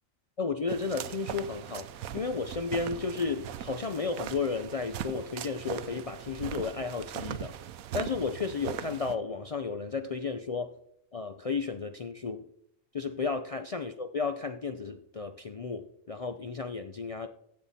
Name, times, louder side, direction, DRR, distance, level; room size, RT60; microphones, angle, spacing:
voice 1, 0.4-7.5 7.9-10.7 11.1-12.4 12.9-17.3, left 4 dB, 65° left, 0.3 m, -33 dB
sound 1, 0.7-9.2, right 10 dB, 85° right, 1.1 m, -40 dB
15.5 x 7.4 x 4.2 m
omnidirectional pair, 1.4 m